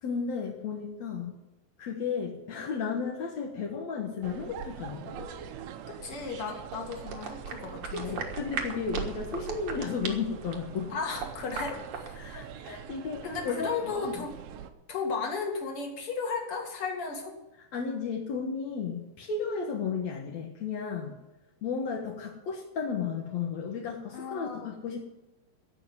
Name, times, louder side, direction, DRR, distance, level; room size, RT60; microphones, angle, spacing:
voice 1, 0.0-1.3 1.8-5.3 7.9-10.9 12.1-14.2 17.7-21.2 21.6-25.1, left 5 dB, 65° left, -1 dB, 1.7 m, -34 dB
sound 1, 4.2-14.7, right 9 dB, 80° right, 3.2 m, -45 dB
sound 2, 5.1-12.2, right 5 dB, 55° right, 1.9 m, -40 dB
voice 2, 6.0-8.2 8.9-9.0 10.9-11.7 12.3-12.4 13.2-14.3 14.9-17.4 24.1-24.7, left 5 dB, 40° left, 1 dB, 2.4 m, -34 dB
16.0 x 5.8 x 9.4 m, 1.0 s
omnidirectional pair, 5.2 m